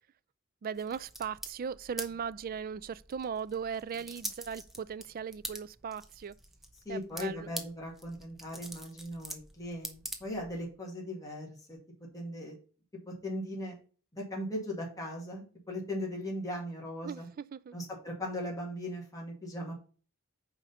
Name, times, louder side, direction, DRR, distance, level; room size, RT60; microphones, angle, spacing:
voice 1, 0.6-6.4 6.9-7.5 17.0-17.8, right 7 dB, 45° right, 0.3 m, -38 dB
sound 1, 0.7-10.7, right 1 dB, ahead, 0.8 m, -46 dB
voice 2, 6.9-11.8 12.1-12.6 13.1-13.7 14.1-17.3 17.7-19.7, left 1 dB, 15° left, 2.1 m, -38 dB
5.0 x 5.0 x 5.4 m
head